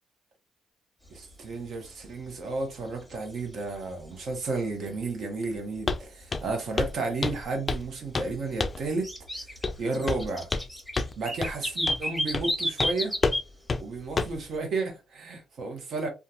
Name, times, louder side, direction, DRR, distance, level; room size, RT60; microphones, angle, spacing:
sound 1, 1.1-1.2 1.5-1.8 2.1-2.5 3.0-4.2 4.5-4.6 5.2-5.3 5.8-5.9 6.2-6.3 6.7-7.5 7.8-13.5 13.7-14.2, equal, ahead, 1.1 m, -32 dB
voice 1, 1.1-9.1 9.4-9.5 9.8-10.5 11.2-13.2 13.8-16.1, right 3 dB, 60° right, 1.0 m, -32 dB
Walk footsteps, 5.9-6.0 6.3-6.5 6.8-7.0 7.2-7.9 8.1-8.3 8.6-8.9 9.6-9.8 10.1-10.7 11.0-11.1 11.4-11.5 11.9-12.0 12.3-12.5 12.8-12.9 13.2-13.4 13.7-13.8 14.2-14.4, left 4 dB, 35° left, 0.3 m, -28 dB
2.8 x 2.4 x 2.4 m
cardioid pair, 90°, 0 cm